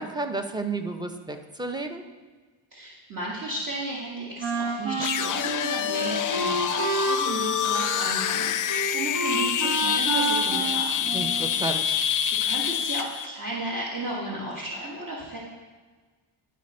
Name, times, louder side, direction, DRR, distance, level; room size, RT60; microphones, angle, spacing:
voice 1, 0.0-2.0 11.1-12.0, right 3 dB, 10° right, 6 dB, 0.6 m, -32 dB
voice 2, 2.7-11.2 11.6-11.9 12.4-15.4, right 1 dB, 40° right, -5 dB, 1.7 m, -34 dB
Wind instrument woodwind instrument, 4.4-11.6, right 2 dB, 70° right, 1.4 m, -30 dB
sound 1, 5.0-13.3, left 9 dB, 40° left, 0.4 m, -26 dB
11.5 x 4.2 x 4.2 m, 1.4 s
cardioid pair, 90°, 49 cm